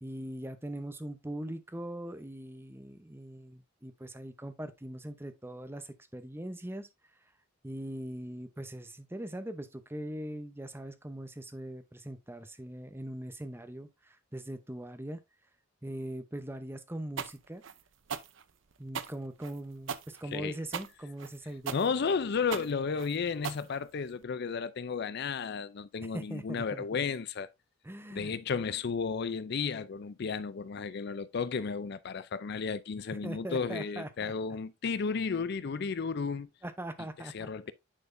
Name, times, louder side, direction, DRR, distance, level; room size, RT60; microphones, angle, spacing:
voice 1, 0.0-6.9 7.6-15.2 15.8-17.6 18.8-21.9 26.1-27.0 27.8-28.3 33.2-34.6 36.6-37.5, right 1 dB, 10° right, 0.8 m, -41 dB
sound 1, 17.2-24.2, right 7 dB, 65° right, 0.6 m, -39 dB
voice 2, 21.7-27.5 28.1-36.5 37.3-37.7, left 5 dB, 55° left, 0.4 m, -33 dB
9.8 x 4.3 x 2.6 m
head